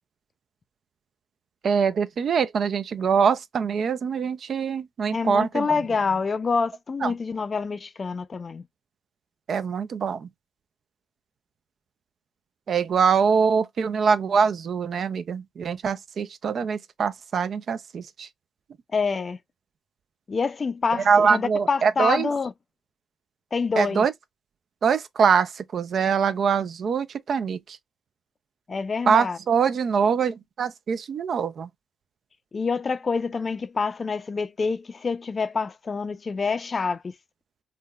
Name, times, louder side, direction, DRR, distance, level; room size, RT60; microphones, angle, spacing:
voice 1, 1.6-5.7 7.0-7.1 9.5-10.3 12.7-18.3 20.9-22.3 23.8-24.1 24.8-27.8 29.1-31.7, right 6 dB, 60° right, 0.4 m, -23 dB
voice 2, 5.1-8.6 18.9-19.4 20.3-22.5 23.5-24.1 28.7-29.4 32.5-37.1, left 4 dB, 40° left, 0.4 m, -27 dB
3.7 x 2.2 x 2.2 m
cardioid pair, 65°, 0 cm